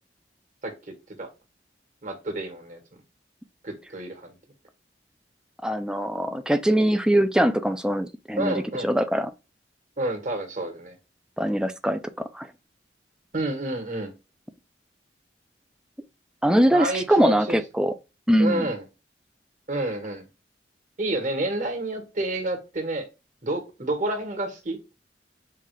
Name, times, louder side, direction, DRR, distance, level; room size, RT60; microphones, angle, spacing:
voice 1, 2.0-2.8 3.6-4.4 8.4-8.9 10.0-10.9 13.3-14.1 16.7-17.6 18.4-18.8 19.7-20.2 21.0-23.1 23.4-24.8, right 2 dB, 45° right, 1.5 m, -29 dB
voice 2, 5.6-9.3 11.4-12.5 16.4-17.9 18.3-18.7, equal, 5° right, 0.4 m, -22 dB
5.6 x 2.4 x 3.1 m
head